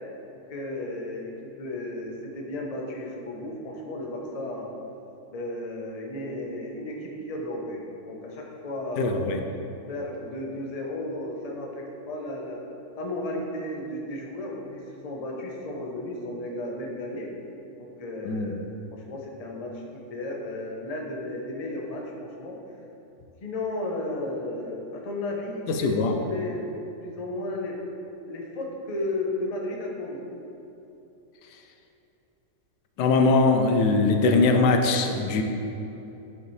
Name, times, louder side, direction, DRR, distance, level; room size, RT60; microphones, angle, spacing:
voice 1, 0.5-4.7 5.3-9.3 9.9-12.6 13.0-17.3 17.8-22.6 23.4-26.7 27.0-27.7 28.3-30.2, left 1 dB, 35° left, -1 dB, 0.7 m, -34 dB
voice 2, 9.0-9.4 18.3-18.5 25.7-26.1 33.0-35.4, left 3 dB, 90° left, 5 dB, 1.2 m, -21 dB
9.5 x 5.5 x 3.2 m, 2.9 s
omnidirectional pair, 1.8 m